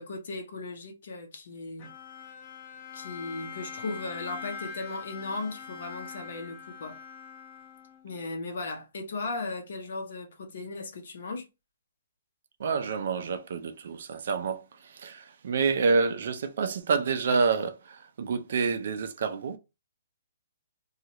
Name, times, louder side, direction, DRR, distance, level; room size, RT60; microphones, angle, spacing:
voice 1, 0.0-1.9 2.9-7.0 8.0-11.4, left 3 dB, 55° left, 0.9 m, -37 dB
Bowed string instrument, 1.8-8.2, left 6 dB, 25° left, 0.5 m, -43 dB
voice 2, 12.6-19.6, right 5 dB, 50° right, 0.4 m, -28 dB
2.8 x 2.4 x 2.9 m
hypercardioid pair, 170°, 0 cm